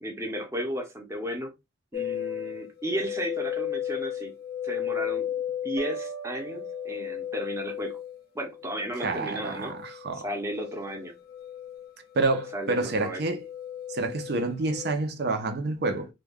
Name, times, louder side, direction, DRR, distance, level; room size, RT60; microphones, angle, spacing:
voice 1, 0.0-1.5 1.9-4.3 4.6-5.3 5.6-8.0 8.3-9.8 10.1-11.1 12.5-13.2, equal, 15° right, 0.6 m, -34 dB
sound 1, 1.9-14.9, left 10 dB, 55° left, 0.6 m, -35 dB
sound 2, 5.8-7.7, right 8 dB, 85° right, 0.9 m, -41 dB
voice 2, 9.0-10.3 12.2-13.4 13.9-16.1, right 3 dB, 60° right, 0.5 m, -28 dB
2.2 x 2.2 x 3.3 m
head